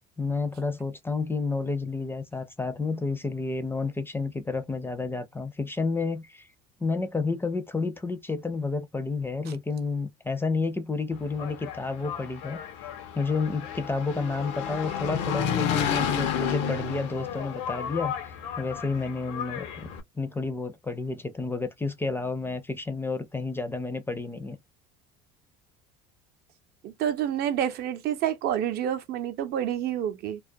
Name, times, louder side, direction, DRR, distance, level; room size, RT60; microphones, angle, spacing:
voice 1, 0.2-6.5 6.8-12.9 13.1-19.9 20.1-24.6, left 4 dB, 10° left, 0.5 m, -30 dB
Engine, 11.2-20.0, left 8 dB, 75° left, 0.7 m, -32 dB
voice 2, 26.8-30.4, right 10 dB, 60° right, 0.6 m, -28 dB
2.3 x 2.1 x 2.5 m
supercardioid pair, 105°, 19 cm